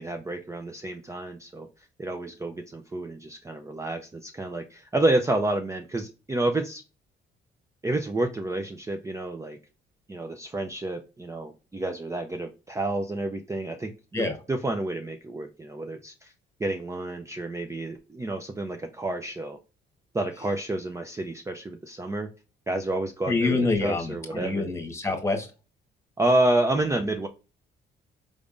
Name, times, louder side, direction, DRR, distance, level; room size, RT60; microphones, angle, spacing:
voice 1, 0.0-1.7 2.0-6.8 7.8-9.6 10.1-16.3 16.6-19.6 20.1-22.3 22.7-24.7 26.2-27.3, right 2 dB, 15° right, 6 dB, 0.5 m, -29 dB
voice 2, 23.3-25.5, left 3 dB, 15° left, 4 dB, 1.4 m, -26 dB
5.0 x 3.3 x 2.5 m, 0.32 s
cardioid pair, 80°, 19 cm